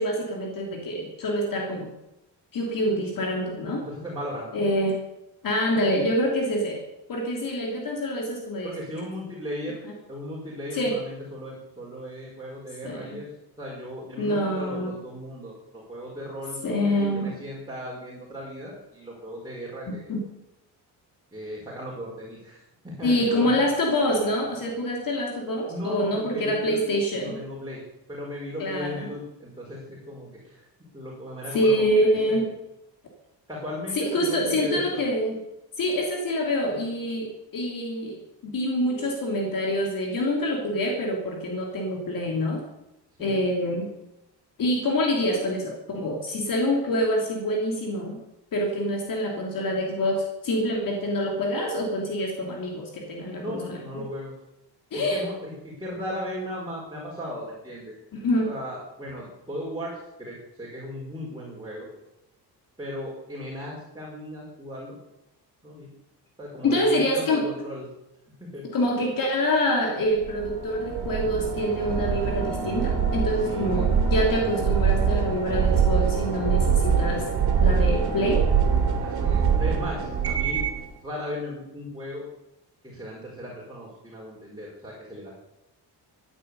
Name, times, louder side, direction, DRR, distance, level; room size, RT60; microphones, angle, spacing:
voice 1, 0.0-1.9 2.5-3.8 4.5-5.0 5.4-6.8 7.1-8.7 10.7-10.9 12.8-13.1 14.2-14.9 16.6-17.3 20.1-20.2 23.0-27.4 28.6-29.1 31.5-32.4 34.0-35.4 35.8-38.2 38.4-42.6 43.2-43.9 44.6-48.2 48.5-54.1 54.9-55.2 58.1-58.5 66.6-67.4 68.7-77.2 77.6-78.4, equal, 55° left, 0 dB, 3.1 m, -26 dB
voice 2, 3.8-4.5 8.6-9.8 10.1-13.3 13.6-20.1 21.3-23.5 25.7-26.8 27.1-27.8 28.1-30.7 30.9-32.4 33.5-35.0 43.2-43.4 53.4-54.3 54.9-57.9 58.5-61.9 62.8-65.0 65.6-65.9 66.4-67.9 68.4-68.6 73.4-73.9 79.0-80.6 81.0-82.3 82.8-85.3, equal, 10° right, -5 dB, 4.8 m, -36 dB
sound 1, 70.2-80.8, right 6 dB, 65° right, 3.0 m, -24 dB
15.5 x 9.9 x 8.2 m, 0.91 s
cardioid pair, 145°, 41 cm